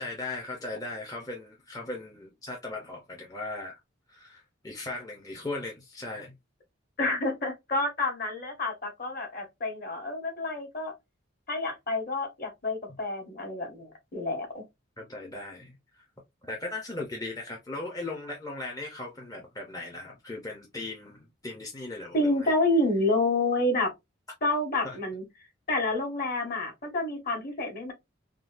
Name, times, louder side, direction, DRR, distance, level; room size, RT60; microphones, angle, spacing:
voice 1, 0.0-3.8 4.1-6.3 15.0-16.1 16.4-22.5 24.8-25.0, left 2 dB, 20° left, 0.5 m, -38 dB
voice 2, 7.0-10.9 11.5-14.6 22.1-23.9 24.4-25.2 25.7-27.9, left 2 dB, 50° left, 1.3 m, -28 dB
3.6 x 2.2 x 2.4 m
head